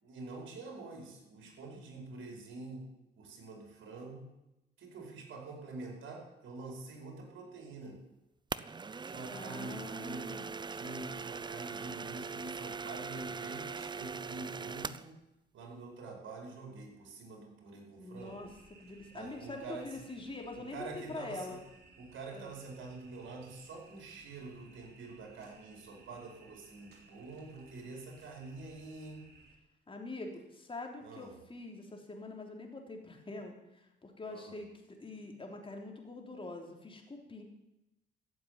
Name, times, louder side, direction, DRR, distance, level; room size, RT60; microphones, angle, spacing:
voice 1, 0.0-2.9 3.2-4.3 4.8-8.0 9.0-10.3 10.7-15.1 15.5-18.5 19.1-19.9 20.6-21.6 22.0-29.3 31.0-31.3 34.2-34.6, right 3 dB, 75° right, 0 dB, 5.1 m, -46 dB
sound 1, 8.5-15.1, right 5 dB, 20° right, 0.5 m, -41 dB
voice 2, 9.3-10.5 18.0-18.5 18.8-21.6 22.3-22.5 29.9-37.4, left 2 dB, 25° left, 2 dB, 3.6 m, -44 dB
sound 2, 18.2-29.5, right 3 dB, 55° right, 3.7 m, -61 dB
15.0 x 7.8 x 9.7 m, 0.93 s
cardioid pair, 90°, 20 cm